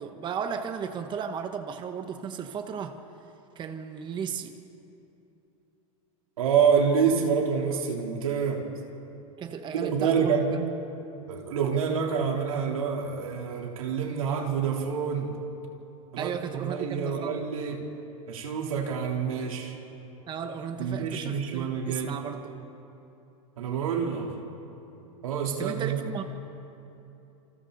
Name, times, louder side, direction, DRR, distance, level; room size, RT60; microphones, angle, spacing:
voice 1, 0.0-3.0 3.5-4.6 9.4-10.7 16.2-17.4 20.3-22.5 25.6-26.2, right 7 dB, 25° right, 7 dB, 1.3 m, -35 dB
voice 2, 6.4-8.6 9.7-10.4 11.3-15.3 16.1-17.9 18.3-19.8 20.8-22.2 23.6-24.3 25.2-26.0, right 6 dB, 90° right, 0 dB, 3.7 m, -27 dB
29.5 x 27.5 x 4.2 m, 2.9 s
supercardioid pair, 125°, 17 cm